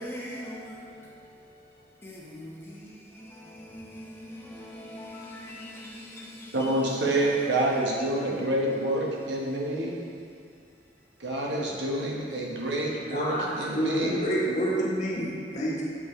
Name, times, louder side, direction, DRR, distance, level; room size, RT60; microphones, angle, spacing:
voice 1, 0.0-7.5 8.4-8.5, equal, 15° left, 1.0 m, -43 dB
voice 2, 6.5-10.0 11.2-14.3, right 1 dB, 85° right, 1.2 m, -27 dB
voice 3, 13.1-15.8, right 1 dB, 45° left, 1.4 m, -28 dB
7.9 x 5.4 x 3.2 m
head